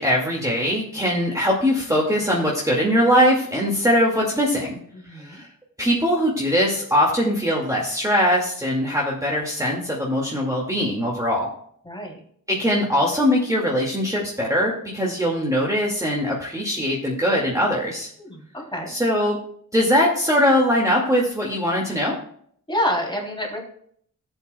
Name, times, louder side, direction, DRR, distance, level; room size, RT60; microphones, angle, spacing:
voice 1, 0.0-4.8 5.1-5.5 5.8-11.5 12.5-18.1 18.9-19.4 19.7-22.1, equal, 10° right, -3 dB, 2.2 m, -21 dB
voice 2, 4.9-5.4 11.8-12.2 18.2-18.9 22.7-23.6, left 1 dB, 15° left, -1 dB, 3.3 m, -28 dB
15.0 x 8.2 x 2.3 m, 0.62 s
cardioid pair, 85°, 33 cm